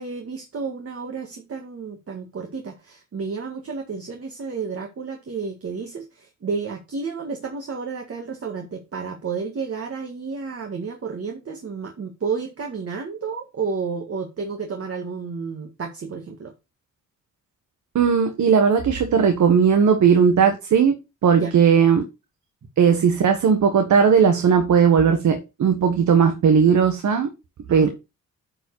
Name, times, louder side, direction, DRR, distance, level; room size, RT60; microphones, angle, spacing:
voice 1, 0.0-16.5 21.4-21.5 27.7-27.9, right 5 dB, 45° right, 1.9 m, -31 dB
voice 2, 17.9-20.9 21.2-22.0 22.8-27.3 27.7-27.9, right 6 dB, 65° right, 1.4 m, -17 dB
9.8 x 4.9 x 4.8 m
cardioid pair, 80°, 31 cm